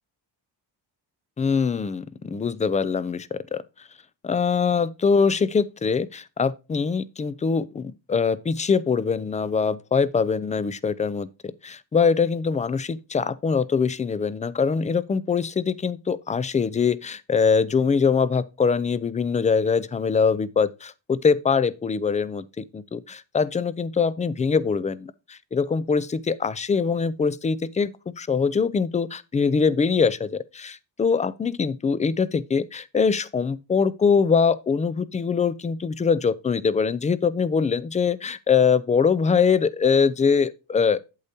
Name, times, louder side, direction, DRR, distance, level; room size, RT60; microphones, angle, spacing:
voice 1, 1.4-3.6 4.2-11.3 11.6-41.0, left 5 dB, 20° left, 0.3 m, -23 dB
8.4 x 8.0 x 2.7 m
cardioid pair, 145°, 41 cm